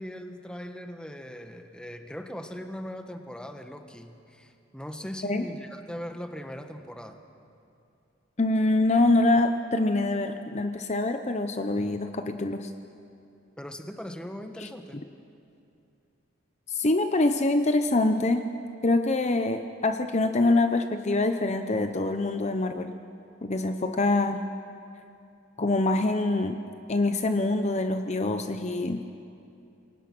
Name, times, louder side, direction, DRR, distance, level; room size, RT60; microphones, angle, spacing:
voice 1, 0.0-7.2 13.6-15.0, equal, 5° left, 6 dB, 1.2 m, -39 dB
voice 2, 8.4-12.7 14.6-14.7 16.7-18.4 18.8-22.9 23.4-24.4 25.6-26.6 26.9-29.0, left 2 dB, 35° left, 7 dB, 0.8 m, -25 dB
27.5 x 23.0 x 6.1 m, 2.6 s
head